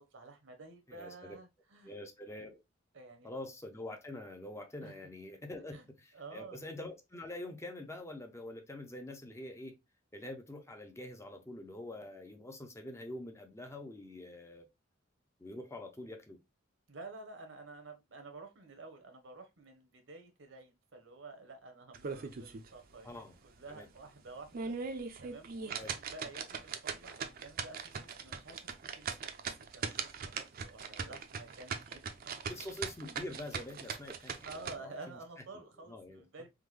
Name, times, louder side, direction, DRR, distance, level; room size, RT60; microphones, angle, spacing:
voice 1, 0.1-1.9 2.9-3.3 4.8-4.9 5.7-5.8 6.1-6.6 16.9-28.6 29.0-29.3 29.7-32.7 34.4-36.5, right 3 dB, 75° right, 0.9 m, -51 dB
voice 2, 0.9-1.4 1.8-2.6 3.2-9.8 10.1-14.7 15.4-16.4 23.0-23.4 23.7-23.9 25.8-26.0 28.2-28.3 31.1-31.2 32.5-35.2 35.9-36.2, left 1 dB, 15° left, 0.5 m, -45 dB
sound 1, 21.9-22.7 23.1-23.2 23.7-23.8 24.4-34.8, right 5 dB, 50° right, 0.4 m, -40 dB
3.5 x 2.2 x 3.1 m
head